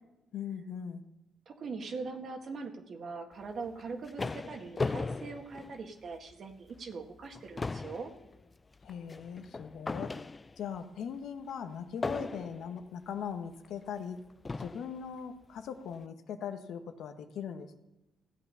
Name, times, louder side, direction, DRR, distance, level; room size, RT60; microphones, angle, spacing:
voice 1, 0.3-1.0 8.8-10.1 10.6-14.2 14.6-17.8, left 7 dB, 75° left, 8 dB, 1.1 m, -40 dB
voice 2, 1.5-8.1, right 4 dB, 55° right, 4 dB, 1.8 m, -41 dB
sound 1, 3.6-6.3 6.8-6.9 7.2-10.8 12.0-12.8 13.6-13.7 14.4-15.0, left 3 dB, 25° left, 0.3 m, -37 dB
15.5 x 8.3 x 5.6 m, 0.98 s
cardioid pair, 90°, 0 cm